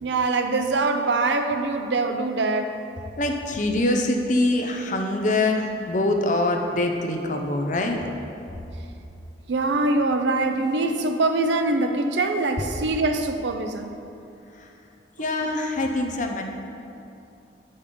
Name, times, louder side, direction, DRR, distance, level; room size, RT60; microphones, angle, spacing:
voice 1, 0.0-2.8 9.5-13.9, right 2 dB, 75° right, 6 dB, 0.6 m, -23 dB
voice 2, 3.2-8.0 14.5-14.7 15.2-16.4, left 2 dB, 45° left, 3 dB, 0.7 m, -24 dB
8.4 x 5.4 x 5.2 m, 2.8 s
head